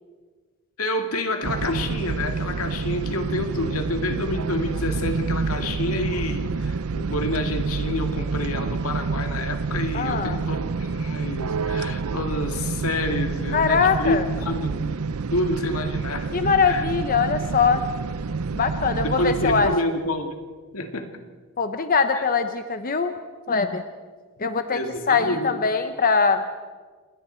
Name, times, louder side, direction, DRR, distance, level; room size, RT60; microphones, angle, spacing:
voice 1, 0.8-14.9 15.3-16.3 16.7-16.9 19.0-20.4 20.7-21.1 22.1-22.2 24.7-25.6, left 1 dB, 80° left, 5 dB, 2.2 m, -28 dB
sound 1, 1.4-19.8, right 4 dB, 90° right, 0.6 m, -28 dB
voice 2, 9.9-10.4 13.5-14.2 16.3-17.8 18.5-19.7 21.6-23.1 23.5-23.8 24.4-24.8 25.1-26.5, left 5 dB, 40° left, 8 dB, 0.9 m, -22 dB
28.0 x 20.5 x 4.5 m, 1.5 s
head